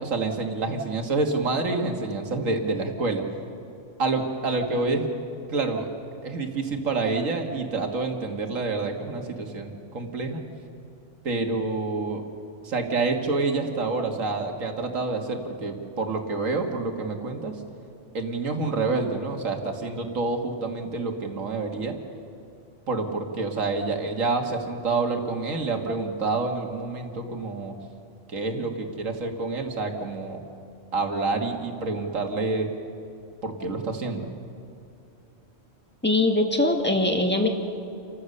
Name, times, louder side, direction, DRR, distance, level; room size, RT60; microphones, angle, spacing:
voice 1, 0.0-3.2 4.0-5.1 5.5-5.9 6.2-10.4 11.2-12.2 12.6-17.6 18.1-22.0 22.9-27.8 28.3-30.4 30.9-32.7 33.4-34.3, right 3 dB, 80° right, 4 dB, 2.1 m, -28 dB
voice 2, 36.0-37.5, left 2 dB, 10° left, 3 dB, 1.7 m, -22 dB
29.0 x 15.0 x 6.6 m, 2.6 s
omnidirectional pair, 1.3 m